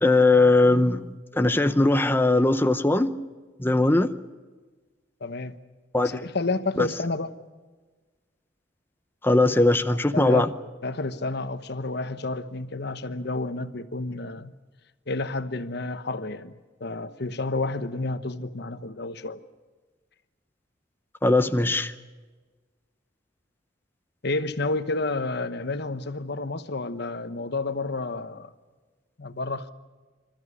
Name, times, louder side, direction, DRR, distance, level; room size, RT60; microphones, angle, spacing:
voice 1, 0.0-3.1 3.6-4.1 5.9-6.2 6.8-6.9 9.2-10.5 21.2-21.9, left 2 dB, 10° left, 0.7 m, -20 dB
voice 2, 5.2-5.6 6.0-7.3 9.9-10.5 10.8-14.5 15.1-16.5 16.8-19.4 24.2-28.5 29.2-29.7, left 3 dB, 60° left, 1.1 m, -30 dB
26.5 x 13.5 x 9.7 m
head